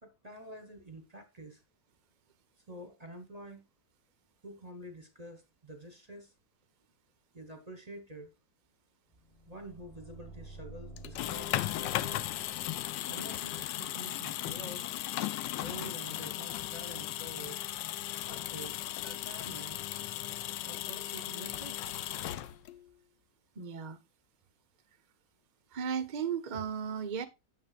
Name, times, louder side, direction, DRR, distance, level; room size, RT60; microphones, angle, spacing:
voice 1, 0.0-1.6 2.7-3.7 4.4-6.3 7.3-8.3 9.5-12.3 13.1-14.9 15.6-17.6 18.2-18.8 19.2-19.8 20.6-22.0, right 1 dB, 25° right, 1.0 m, -48 dB
sound 1, 9.1-14.1, right 2 dB, 20° left, 1.5 m, -52 dB
sound 2, 11.0-22.9, left 13 dB, 80° left, 1.3 m, -36 dB
voice 2, 23.6-24.0 25.7-27.3, right 7 dB, 45° right, 0.5 m, -35 dB
9.2 x 7.5 x 2.4 m
omnidirectional pair, 2.0 m